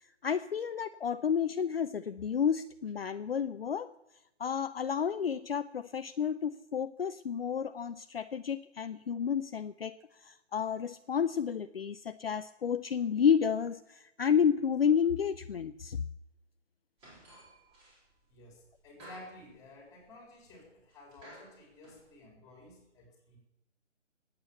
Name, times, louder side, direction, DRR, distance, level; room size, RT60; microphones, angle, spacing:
voice 1, 0.2-3.9 4.4-10.0 10.2-16.0, left 7 dB, 50° left, 11 dB, 0.6 m, -31 dB
sound 1, 17.0-18.2 18.5-20.1 20.4-20.5 20.9-22.1, right 1 dB, 15° right, 4.1 m, -54 dB
voice 2, 18.3-23.4, left 2 dB, 10° left, -1 dB, 3.9 m, -53 dB
20.0 x 8.8 x 7.1 m, 0.90 s
figure-of-eight pair, 150°, 37 cm